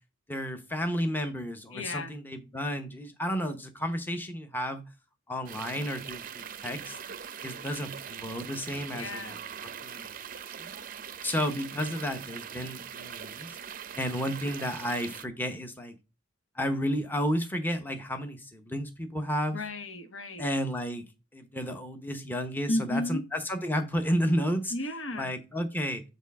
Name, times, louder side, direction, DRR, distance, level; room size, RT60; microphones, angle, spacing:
voice 1, 0.3-4.8 5.3-7.0 7.4-9.4 9.8-10.1 10.6-10.7 11.2-13.6 13.9-16.0 16.5-19.6 20.4-21.0 21.3-24.7 25.1-26.0, equal, 10° left, 0.9 m, -32 dB
voice 2, 1.7-2.1 8.9-9.4 19.5-20.4 22.7-23.2 24.7-25.3, left 1 dB, 65° left, 1.4 m, -33 dB
sound 1, 5.5-15.3, right 8 dB, 40° right, 0.6 m, -42 dB
8.2 x 4.0 x 4.7 m
head